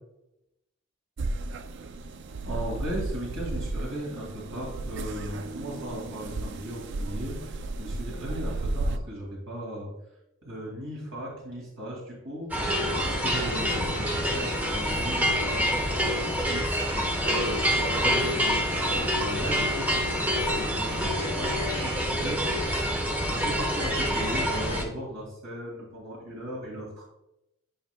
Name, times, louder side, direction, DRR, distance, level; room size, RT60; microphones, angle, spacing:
sound 1, 1.2-9.0, right 2 dB, 55° right, 0.4 m, -34 dB
voice 1, 2.4-9.9 10.4-12.5 12.9-16.7 17.2-27.0, equal, 85° right, -4 dB, 2.3 m, -37 dB
sound 2, 12.5-24.8, equal, 10° right, 0.9 m, -27 dB
10.0 x 5.3 x 2.2 m, 0.89 s
head